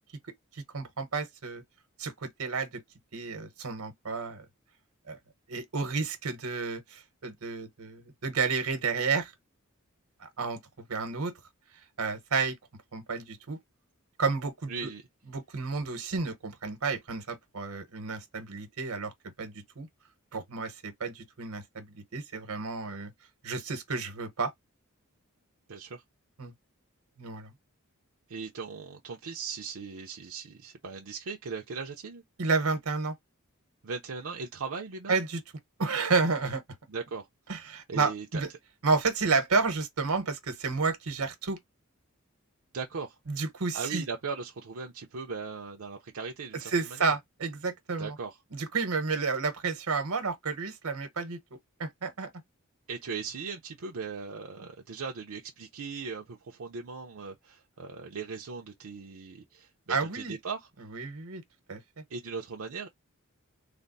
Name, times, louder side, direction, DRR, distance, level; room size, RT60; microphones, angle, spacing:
voice 1, 0.5-1.6 2.0-2.7 3.1-4.4 5.1-5.2 5.5-9.3 10.2-10.6 10.9-11.3 12.0-12.6 12.9-13.6 14.2-14.9 15.3-19.1 19.4-19.9 20.3-23.1 23.4-24.5 26.4-26.5 27.2-27.5 32.4-33.1 35.1-35.4 35.8-36.6 37.5-38.5 38.8-41.6 43.3-44.0 46.7-48.2 48.5-51.4 51.8-52.3 59.9-60.3 60.9-61.4 61.7-61.8, right 4 dB, 85° right, 1.0 m, -31 dB
voice 2, 14.7-15.0 25.7-26.0 28.3-32.2 33.8-35.2 36.9-37.3 37.9-38.4 42.7-43.2 43.7-46.7 47.0-47.2 48.0-48.4 52.9-60.7 62.1-62.9, right 5 dB, 65° right, 0.6 m, -38 dB
3.4 x 2.0 x 3.9 m
head